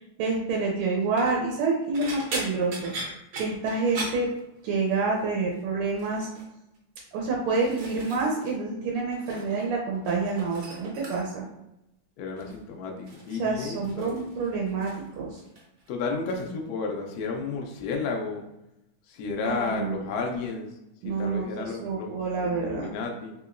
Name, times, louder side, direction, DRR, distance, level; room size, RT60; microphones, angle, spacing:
voice 1, 0.0-4.3 4.6-6.3 7.1-11.5 13.4-14.9 15.2-15.4 19.4-20.0 21.0-22.9, right 4 dB, 90° right, -1 dB, 1.6 m, -28 dB
sound 1, 1.0-1.4 1.9-5.0 5.2-5.6 5.9-6.5 7.1-8.6 8.8-9.7 9.9-11.5 12.4-12.6 13.1-15.1 15.4-15.9 16.3-16.5 17.8-17.9, right 2 dB, 70° right, 1.4 m, -39 dB
voice 2, 12.2-14.3 15.9-18.5 19.1-20.8 21.0-23.3, left 4 dB, 75° left, 2 dB, 0.8 m, -32 dB
3.7 x 2.9 x 2.5 m, 0.88 s
omnidirectional pair, 2.4 m